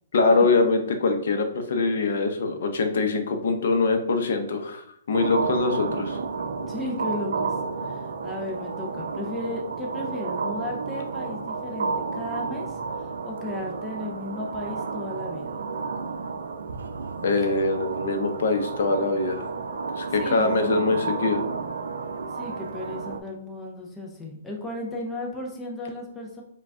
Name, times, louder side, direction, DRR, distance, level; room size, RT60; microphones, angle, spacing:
voice 1, 0.1-6.2 17.2-19.5 20.0-21.4, left 3 dB, 55° left, 6 dB, 0.6 m, -23 dB
sound 1, 5.1-23.2, right 4 dB, 90° right, 0.5 m, -32 dB
voice 2, 6.7-7.5 7.8-15.6 20.2-21.1 22.3-26.4, left 1 dB, 5° left, -1 dB, 0.4 m, -35 dB
4.7 x 2.2 x 3.6 m, 0.70 s
hypercardioid pair, 175°, 0 cm